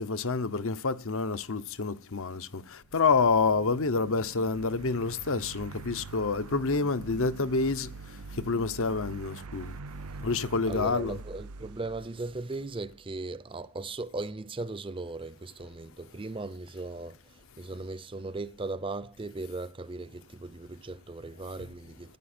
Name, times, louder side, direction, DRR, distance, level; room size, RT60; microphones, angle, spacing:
voice 1, 0.0-7.9 8.3-9.8 10.2-11.2, left 4 dB, 65° left, 0.9 m, -28 dB
sound 1, 2.9-13.1, right 4 dB, 75° right, 0.6 m, -45 dB
voice 2, 10.7-22.2, right 2 dB, 25° right, 0.6 m, -38 dB
16.5 x 10.0 x 4.4 m
head